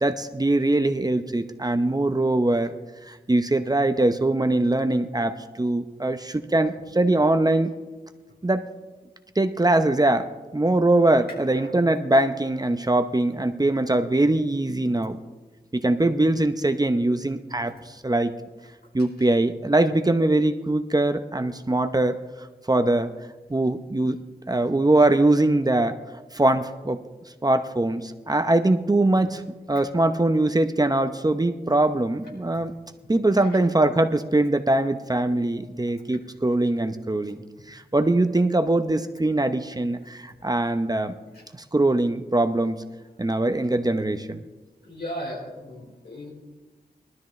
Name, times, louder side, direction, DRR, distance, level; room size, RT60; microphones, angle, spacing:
voice 1, 0.0-2.7 3.0-7.7 8.4-8.7 9.4-15.2 15.7-18.3 18.9-22.2 22.7-23.1 23.5-24.2 24.5-26.0 26.3-27.0 27.4-29.4 29.7-32.7 33.1-37.4 37.7-41.2 41.5-42.8 43.2-44.4, right 2 dB, 25° right, 8 dB, 0.8 m, -22 dB
voice 2, 44.8-46.3, equal, 80° left, -3 dB, 4.5 m, -36 dB
20.0 x 12.5 x 3.2 m, 1.2 s
cardioid pair, 50°, 16 cm